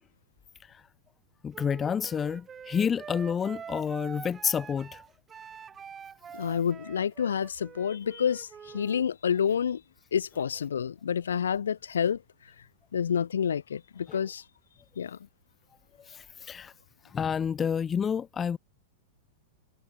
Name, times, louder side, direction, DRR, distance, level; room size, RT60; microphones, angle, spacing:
voice 1, 1.4-5.0 14.1-14.2 16.1-16.7 17.1-18.6, left 7 dB, 20° left, 0.5 m, -29 dB
Wind instrument woodwind instrument, 1.5-9.0, right 7 dB, 20° right, 3.7 m, -45 dB
voice 2, 6.3-8.5 8.7-9.8 10.1-12.2 12.9-14.4 15.0-15.2, left 7 dB, 70° left, 0.4 m, -28 dB
figure-of-eight pair, 95°, 0 cm